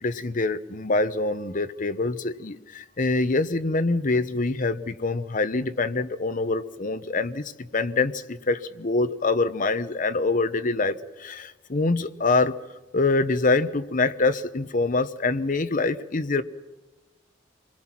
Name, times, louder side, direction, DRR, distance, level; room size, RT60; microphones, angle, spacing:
voice 1, 0.0-12.6 12.9-16.4, left 3 dB, 45° left, 10 dB, 0.9 m, -25 dB
27.0 x 21.0 x 6.0 m, 1.2 s
head